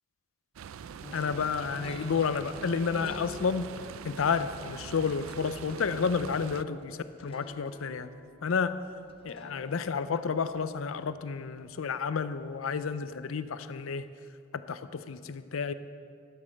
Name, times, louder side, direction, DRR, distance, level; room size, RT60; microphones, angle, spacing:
sound 1, 0.6-6.6, right 7 dB, 90° right, 0.4 m, -43 dB
sound 2, 1.0-12.1, left 2 dB, 30° left, 0.7 m, -49 dB
voice 1, 1.1-3.7 4.0-8.1 8.4-8.8 9.2-14.0 14.7-15.7, left 5 dB, 85° left, 13 dB, 0.5 m, -31 dB
11.5 x 7.6 x 6.5 m, 2.3 s
head